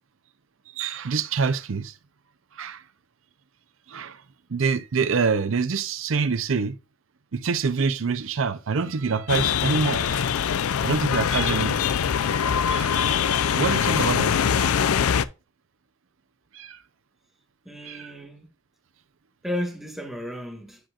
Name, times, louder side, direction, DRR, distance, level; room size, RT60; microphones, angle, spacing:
voice 1, 0.8-1.9 2.6-2.8 3.9-4.2 4.5-6.8 7.3-10.4 10.8-11.8 12.7-13.0 13.5-14.8 16.5-16.8 17.8-18.1, right 5 dB, 65° right, 0.6 m, -26 dB
sound 1, 9.3-15.3, left 8 dB, 85° left, 0.4 m, -23 dB
voice 2, 17.6-18.5 19.4-20.8, left 1 dB, ahead, 1.4 m, -33 dB
10.0 x 4.3 x 2.4 m
head